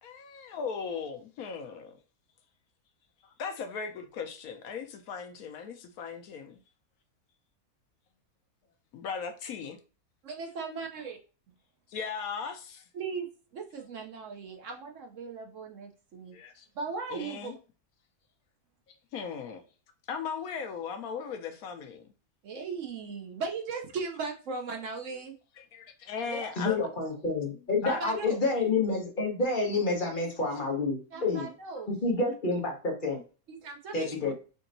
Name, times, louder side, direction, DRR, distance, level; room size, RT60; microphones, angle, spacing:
voice 1, 0.0-2.0 3.2-6.6 8.9-9.8 11.9-12.8 16.3-16.7 17.1-17.6 19.1-19.6 20.1-22.1 25.6-26.9 27.8-28.0 31.8-31.9 34.0-34.1, left 6 dB, 75° left, 1.1 m, -38 dB
voice 2, 10.2-11.2 12.9-13.3 13.5-16.4 16.8-17.5 22.4-25.3 26.2-26.8 27.9-28.4 31.1-31.9 33.5-34.3, right 4 dB, 65° right, 1.0 m, -38 dB
voice 3, 26.6-31.5 31.9-33.2 33.9-34.3, left 3 dB, 35° left, 1.1 m, -29 dB
5.2 x 2.8 x 2.6 m
omnidirectional pair, 1.6 m